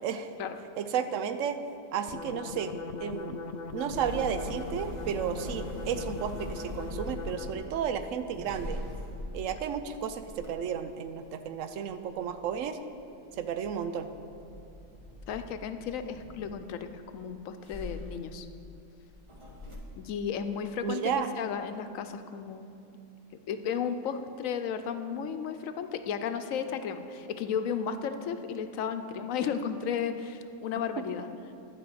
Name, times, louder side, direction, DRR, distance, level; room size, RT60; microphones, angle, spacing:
voice 1, 0.0-0.3 0.8-1.6 1.9-2.7 3.0-3.4 3.7-8.8 9.3-12.8 13.4-14.1 20.8-21.3, right 7 dB, 75° right, 9 dB, 1.0 m, -33 dB
sound 1, 2.1-7.8, left 4 dB, 70° left, 0.4 m, -40 dB
sound 2, 3.9-13.1 13.3-17.1 17.6-19.8, left 1 dB, 25° right, 1.2 m, -42 dB
voice 2, 15.3-18.5 20.0-22.7 23.5-31.3, left 7 dB, 90° left, 9 dB, 1.0 m, -34 dB
12.0 x 5.0 x 7.7 m, 2.6 s
omnidirectional pair, 1.3 m